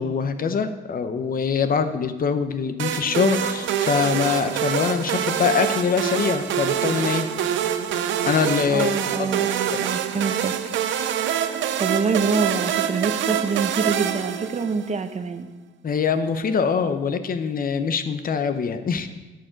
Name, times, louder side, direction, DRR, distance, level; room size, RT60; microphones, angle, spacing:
voice 1, 0.0-7.3 8.3-9.3 9.7-9.8 15.8-19.1, left 6 dB, 45° left, 9 dB, 0.8 m, -23 dB
sound 1, 2.8-15.0, right 9 dB, 75° right, 0.6 m, -25 dB
voice 2, 8.7-10.5 11.8-15.5, right 4 dB, 35° right, 9 dB, 0.8 m, -26 dB
10.5 x 6.5 x 5.1 m, 1.2 s
cardioid pair, 90°, 20 cm